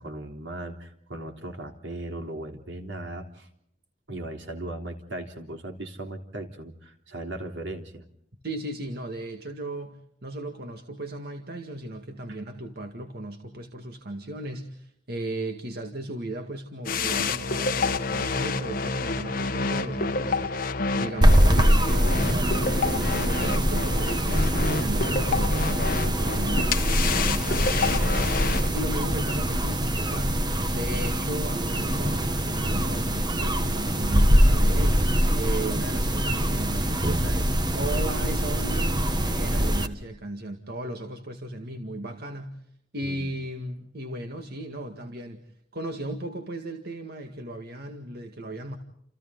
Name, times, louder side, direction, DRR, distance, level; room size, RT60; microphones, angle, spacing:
voice 1, 0.0-3.5 4.1-8.1 12.3-12.4 43.0-43.2, right 1 dB, 85° right, 4 dB, 3.5 m, -37 dB
voice 2, 8.4-30.4 30.7-42.6 42.9-45.4 45.7-48.8, right 1 dB, 60° right, 5 dB, 2.0 m, -36 dB
sound 1, 16.8-28.7, left 4 dB, 55° left, 1.1 m, -28 dB
sound 2, 21.2-39.9, equal, 25° right, 1.4 m, -23 dB
29.5 x 28.5 x 3.9 m, 0.73 s
head